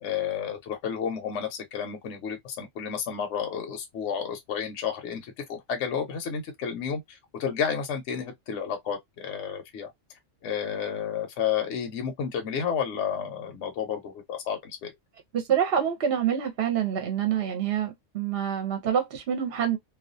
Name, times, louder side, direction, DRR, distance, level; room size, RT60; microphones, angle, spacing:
voice 1, 0.0-9.9 10.4-14.9, left 7 dB, 65° left, 0.9 m, -31 dB
voice 2, 15.3-19.8, right 9 dB, 55° right, 0.8 m, -26 dB
2.4 x 2.3 x 2.4 m
omnidirectional pair, 1.4 m